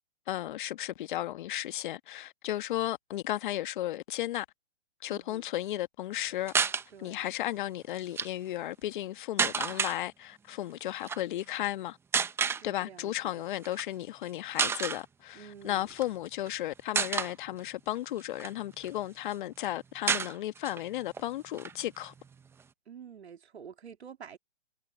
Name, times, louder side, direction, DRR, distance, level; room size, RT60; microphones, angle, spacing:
voice 1, 0.3-4.4 5.0-6.5 7.0-12.0 12.6-22.1, left 14 dB, 50° left, 1.5 m, -34 dB
voice 2, 5.1-5.4 6.9-7.3 12.4-13.5 15.3-15.9 22.9-24.4, right 7 dB, 75° right, 2.9 m, -49 dB
sound 1, 6.5-6.8 8.0-8.3 9.4-10.0 11.0-11.2 12.1-12.6 13.6-13.8 14.2-14.3 14.6-15.0 15.9-16.5 16.9-17.3 17.9-19.0 19.3-19.4 19.6-19.7 20.1-20.8 21.1-21.2 21.5-22.6, right 6 dB, 5° right, 0.9 m, -30 dB
hypercardioid pair, 140°, 33 cm